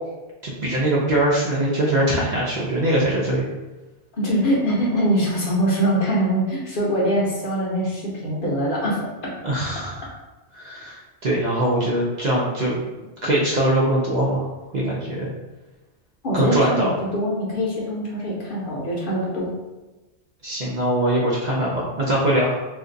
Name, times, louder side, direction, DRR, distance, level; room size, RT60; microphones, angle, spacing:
voice 1, 0.4-3.4 9.4-10.1 10.5-12.8 13.2-14.4 14.7-15.3 16.3-16.9 20.4-22.7, right 1 dB, 50° right, -6 dB, 0.6 m, -22 dB
voice 2, 4.2-9.0 16.2-19.5, equal, 55° left, -5 dB, 0.9 m, -23 dB
2.5 x 2.4 x 3.8 m, 1.1 s
omnidirectional pair, 1.2 m